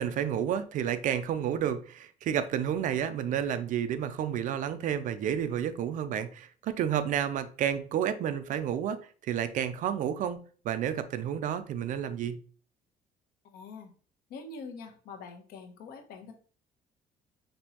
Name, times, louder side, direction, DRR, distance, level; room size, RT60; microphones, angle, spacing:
voice 1, 0.0-9.0 9.3-12.4, right 9 dB, 55° right, 0.5 m, -30 dB
voice 2, 13.4-13.9 14.3-16.3, left 4 dB, 80° left, 1.0 m, -44 dB
5.3 x 3.0 x 2.9 m
cardioid pair, 155°, 16 cm